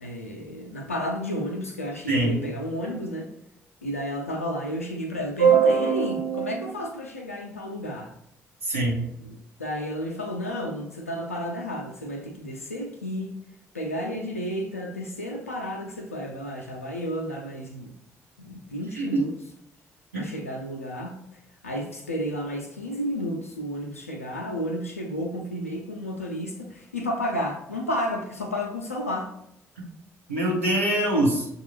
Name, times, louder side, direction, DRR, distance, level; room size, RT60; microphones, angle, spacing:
voice 1, 0.0-3.3 3.8-8.1 9.2-13.3 13.7-17.9 18.4-19.3 20.2-21.2 21.6-29.3, equal, 85° left, 0.5 m, -32 dB
voice 2, 2.1-2.4 5.4-6.8 8.6-9.1 18.9-19.2 20.1-20.3 30.3-31.5, right 4 dB, 85° right, 0.9 m, -23 dB
6.5 x 2.4 x 3.0 m
figure-of-eight pair, 45°, 7 cm